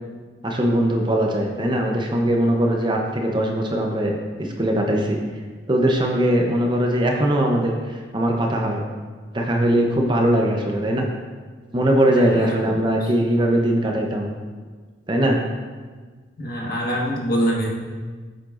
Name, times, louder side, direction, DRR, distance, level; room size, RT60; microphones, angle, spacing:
voice 1, 0.4-5.2 5.7-7.7 8.1-8.8 9.3-11.1 11.7-14.3 15.1-15.4, right 1 dB, 25° right, 1 dB, 0.7 m, -20 dB
voice 2, 12.0-13.1 16.4-17.7, equal, 55° left, -2 dB, 1.5 m, -25 dB
8.7 x 7.7 x 2.5 m, 1.5 s
head